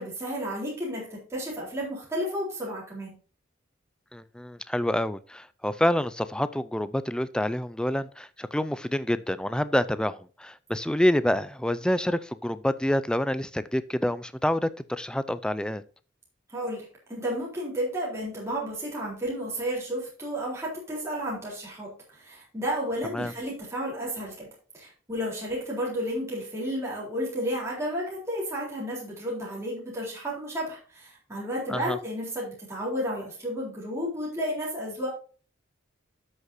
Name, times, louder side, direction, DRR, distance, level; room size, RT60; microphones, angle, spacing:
voice 1, 0.0-3.2 16.5-24.5 24.7-35.1, equal, 15° right, 3.7 m, -32 dB
voice 2, 4.1-15.8 23.1-23.3 31.7-32.0, left 1 dB, 5° left, 0.4 m, -27 dB
12.0 x 6.6 x 2.7 m
head